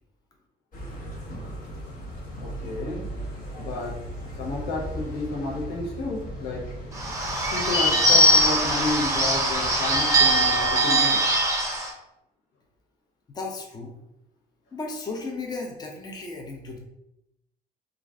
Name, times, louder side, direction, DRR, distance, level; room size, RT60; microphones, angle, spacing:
sound 1, 0.7-10.7, equal, 55° left, 0.9 m, -38 dB
voice 1, 2.4-3.1 3.6-4.0 4.4-6.7 7.5-11.2, left 3 dB, 85° left, -3 dB, 0.9 m, -31 dB
Bird / Bell, 6.9-11.9, right 1 dB, 20° right, 0.7 m, -21 dB
voice 2, 13.3-13.9 14.7-16.8, left 3 dB, 25° left, 1 dB, 0.6 m, -34 dB
2.5 x 2.4 x 3.3 m, 0.85 s
cardioid pair, 110°, 17 cm